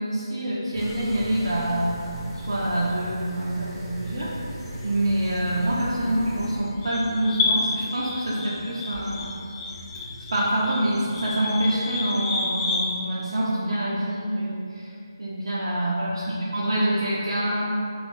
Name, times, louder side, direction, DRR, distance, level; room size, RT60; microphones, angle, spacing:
voice 1, 0.0-4.3 4.8-9.3 10.3-14.9 15.2-17.7, right 1 dB, 70° right, -7 dB, 0.5 m, -26 dB
sound 1, 0.7-6.6, equal, 5° left, 0.3 m, -37 dB
sound 2, 4.5-12.9, left 3 dB, 25° left, 0.8 m, -30 dB
4.2 x 2.4 x 2.6 m, 2.5 s
figure-of-eight pair, 155°, 3 cm